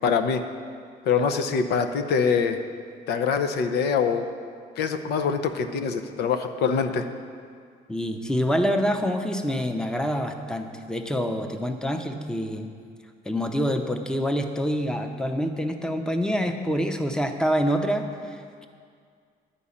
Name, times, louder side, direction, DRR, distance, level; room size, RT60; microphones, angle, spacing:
voice 1, 0.0-0.4 1.1-2.6 3.1-4.2 4.8-7.1, left 6 dB, 75° left, 8 dB, 0.7 m, -24 dB
voice 2, 7.9-12.7 13.3-18.7, equal, 5° left, 6 dB, 0.7 m, -26 dB
10.0 x 5.4 x 8.5 m, 2.2 s
cardioid pair, 110°, 17 cm